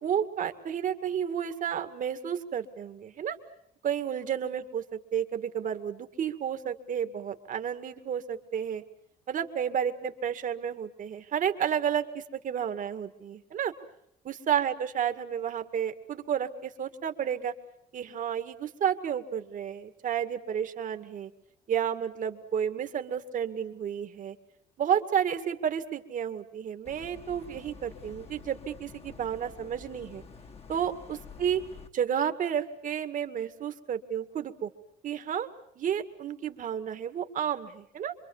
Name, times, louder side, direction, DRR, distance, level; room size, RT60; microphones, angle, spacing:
voice 1, 0.0-3.4 3.8-8.8 9.3-13.7 14.2-17.5 17.9-21.3 21.7-24.4 24.8-30.2 30.7-31.6 31.9-34.7 35.0-35.5 35.8-38.1, right 8 dB, 50° right, 9 dB, 2.0 m, -31 dB
sound 1, 26.9-31.9, left 5 dB, 35° left, 1.9 m, -48 dB
26.5 x 23.0 x 7.2 m, 0.75 s
cardioid pair, 110°, 17 cm